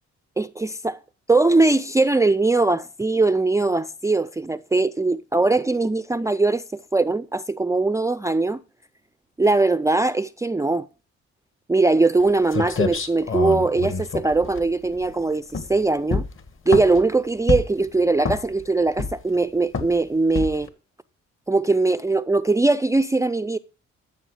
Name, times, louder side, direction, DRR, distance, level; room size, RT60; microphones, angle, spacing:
voice 1, 0.4-1.0 1.3-8.6 9.4-10.9 11.7-16.2 16.7-20.7 21.5-23.6, right 3 dB, 10° right, 0.5 m, -21 dB
sound 1, 12.2-12.3 12.5-15.1 15.5-15.8 16.1-17.1 17.5-17.8 18.2-18.6 19.0-19.4 19.7-20.0 20.4-20.7, left 4 dB, 45° left, 1.8 m, -26 dB
13.5 x 6.9 x 4.9 m
cardioid pair, 90°, 30 cm